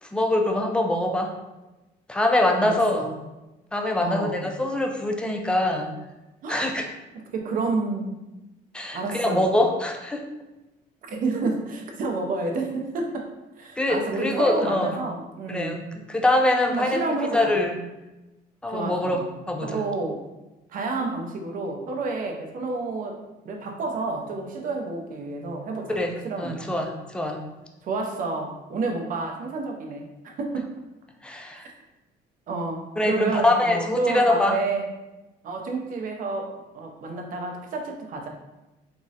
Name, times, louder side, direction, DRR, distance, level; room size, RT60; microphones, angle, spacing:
voice 1, 0.0-1.3 2.1-3.0 3.7-5.9 6.5-6.9 8.7-10.3 13.8-15.0 15.5-15.8 16.1-17.0 17.3-17.8 18.6-19.2 19.5-19.8 25.9-27.4 31.2-31.7 33.0-34.6, left 1 dB, 5° left, 2 dB, 0.3 m, -24 dB
voice 2, 2.6-3.2 4.0-4.5 6.4-6.7 7.1-8.2 8.9-9.5 11.1-13.3 13.6-15.8 16.6-17.6 18.7-19.3 19.6-20.2 20.7-23.2 23.4-26.6 27.8-30.7 32.5-34.9 35.4-38.3, right 3 dB, 55° right, 2 dB, 0.5 m, -30 dB
3.5 x 2.0 x 2.7 m, 1.0 s
cardioid pair, 110°, 17 cm